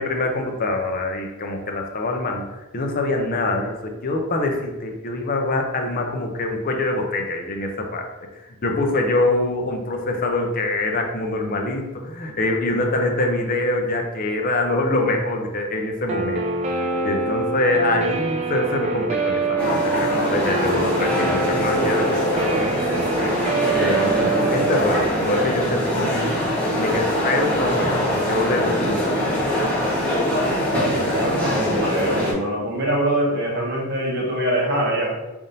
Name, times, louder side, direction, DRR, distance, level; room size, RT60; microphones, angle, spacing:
voice 1, 0.0-2.4 2.7-8.1 8.6-16.4 17.0-23.3 23.7-26.4 26.7-29.2, left 2 dB, 40° left, 2 dB, 0.5 m, -24 dB
Guitar, 16.1-24.8, right 3 dB, 30° right, 0.4 m, -24 dB
sound 1, 19.6-32.3, equal, 5° left, 0.9 m, -23 dB
voice 2, 30.7-35.2, right 1 dB, 50° right, -2 dB, 0.9 m, -24 dB
3.5 x 2.6 x 4.0 m, 1.1 s
head